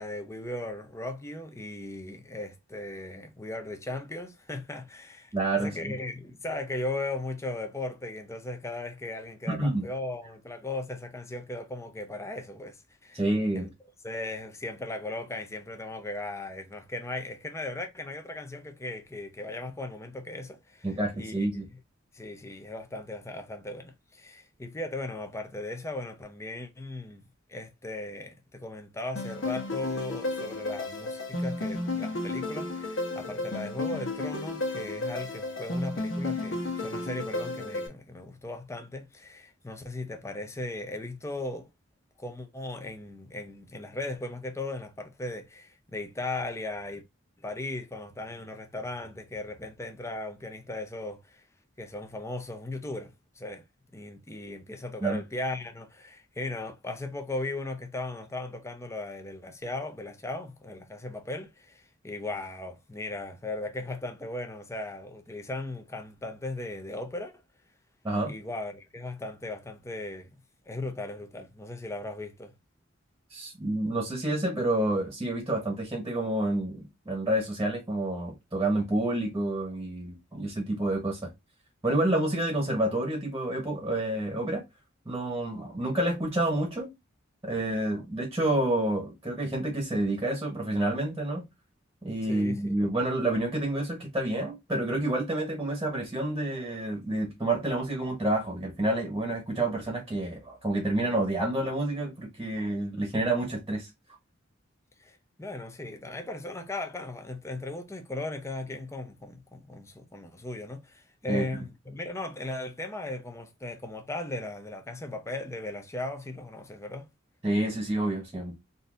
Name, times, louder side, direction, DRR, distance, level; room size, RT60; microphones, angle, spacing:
voice 1, 0.0-13.2 13.5-13.7 14.0-20.9 21.2-21.5 22.1-27.2 27.5-41.7 42.2-47.0 47.4-51.4 51.8-53.6 53.9-67.3 68.3-70.3 70.7-72.5 92.3-92.9 105.0-117.1, left 2 dB, 15° left, 0.6 m, -37 dB
voice 2, 5.3-5.9 9.5-9.8 13.1-13.7 20.8-21.7 55.0-55.2 68.0-68.4 73.3-81.3 81.8-84.6 85.0-86.9 87.4-91.4 92.0-103.9 111.3-111.5 117.4-118.6, right 1 dB, 15° right, 1.1 m, -29 dB
sound 1, 29.2-37.9, left 2 dB, 80° left, 1.1 m, -33 dB
3.9 x 2.6 x 2.4 m
head